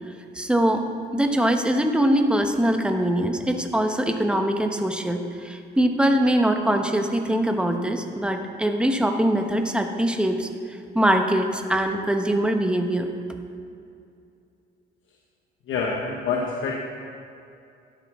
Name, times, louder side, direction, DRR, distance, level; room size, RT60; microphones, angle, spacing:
voice 1, 0.3-0.8 1.1-10.5 10.9-13.1, right 1 dB, 5° right, 4 dB, 1.1 m, -22 dB
voice 2, 15.7-16.8, left 4 dB, 75° left, -1 dB, 1.2 m, -26 dB
13.0 x 10.5 x 3.7 m, 2.5 s
cardioid pair, 90°, 20 cm